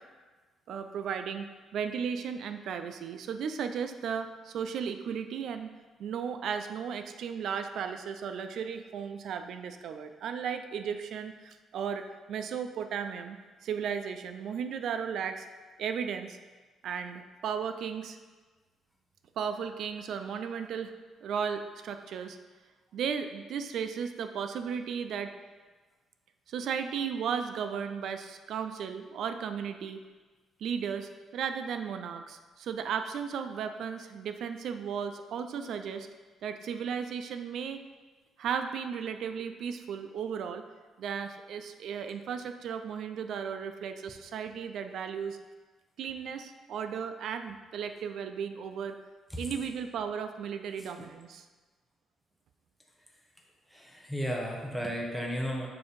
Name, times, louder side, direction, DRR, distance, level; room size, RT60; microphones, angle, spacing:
voice 1, 0.7-5.7 6.0-15.5 15.8-16.4 16.8-18.2 19.4-20.9 21.2-22.4 22.9-25.3 26.5-30.0 30.6-36.1 36.4-37.8 38.4-40.6 41.0-45.4 46.0-49.0 49.4-51.4, right 7 dB, 65° right, 8 dB, 0.4 m, -35 dB
voice 2, 53.7-55.7, equal, ahead, -2 dB, 0.8 m, -33 dB
6.8 x 2.8 x 5.1 m, 1.4 s
cardioid pair, 130°, 0 cm